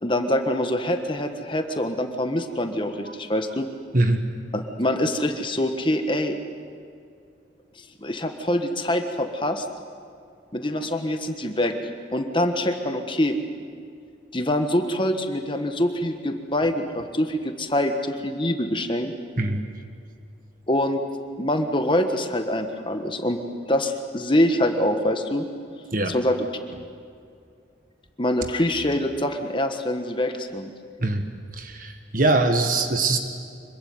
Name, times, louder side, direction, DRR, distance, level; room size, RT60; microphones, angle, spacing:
voice 1, 0.0-3.7 4.5-6.3 8.0-9.7 10.5-11.7 12.1-13.4 14.3-19.1 20.7-21.0 21.4-23.4 23.7-25.4 26.1-26.4 28.2-30.7, left 1 dB, 25° left, 6 dB, 1.5 m, -24 dB
voice 2, 31.5-33.2, right 2 dB, 45° right, 6 dB, 1.6 m, -22 dB
25.5 x 23.0 x 9.6 m, 2.4 s
head